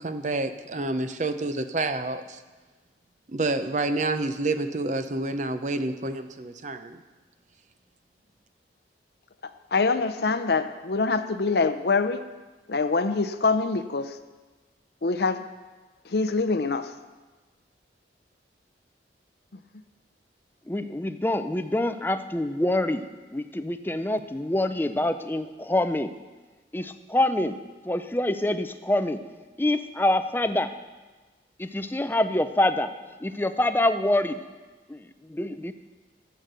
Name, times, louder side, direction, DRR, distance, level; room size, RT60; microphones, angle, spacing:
voice 1, 0.0-2.4 3.3-7.0, right 2 dB, 40° right, 9 dB, 0.6 m, -28 dB
voice 2, 9.4-12.2 12.7-14.2 15.0-15.4 16.1-16.9, left 4 dB, 60° left, 9 dB, 0.6 m, -25 dB
voice 3, 20.7-23.0 23.3-26.1 26.7-27.6 27.8-29.2 29.6-30.7 31.6-32.9 33.2-34.4 34.9-35.7, left 1 dB, 10° left, 10 dB, 0.4 m, -26 dB
12.5 x 8.0 x 6.8 m, 1.3 s
head